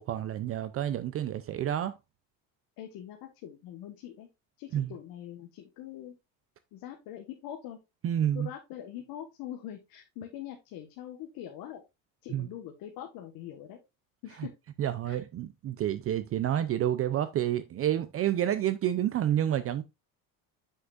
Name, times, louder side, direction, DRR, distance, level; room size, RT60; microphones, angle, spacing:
voice 1, 0.0-2.0 4.7-4.9 8.0-8.5 12.3-12.5 14.8-19.8, right 11 dB, 35° right, 0.5 m, -29 dB
voice 2, 2.8-4.3 4.6-6.1 6.7-7.8 8.3-11.8 12.2-13.8 14.2-14.5 15.0-15.2, left 11 dB, 65° left, 1.4 m, -43 dB
7.6 x 6.2 x 2.5 m
cardioid pair, 130°, 38 cm